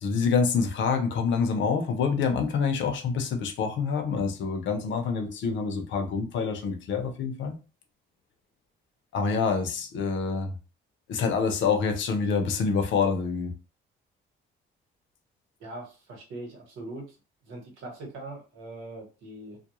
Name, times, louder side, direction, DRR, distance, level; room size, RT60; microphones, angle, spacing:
voice 1, 0.0-7.5 9.1-10.5 11.1-13.5, left 5 dB, 70° left, 0.6 m, -26 dB
voice 2, 15.6-17.2 17.4-19.6, right 2 dB, 85° right, 1.1 m, -41 dB
2.3 x 2.1 x 2.9 m
cardioid pair, 90°, 20 cm